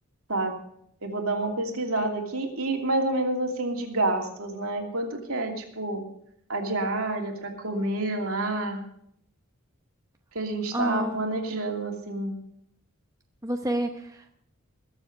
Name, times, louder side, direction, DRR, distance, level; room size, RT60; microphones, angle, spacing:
voice 1, 1.0-6.0 6.5-8.8 10.3-12.3, right 2 dB, 70° right, 1 dB, 2.8 m, -28 dB
voice 2, 10.7-11.2 13.4-14.4, right 1 dB, 15° right, 3 dB, 0.8 m, -29 dB
21.0 x 7.1 x 6.0 m, 0.70 s
head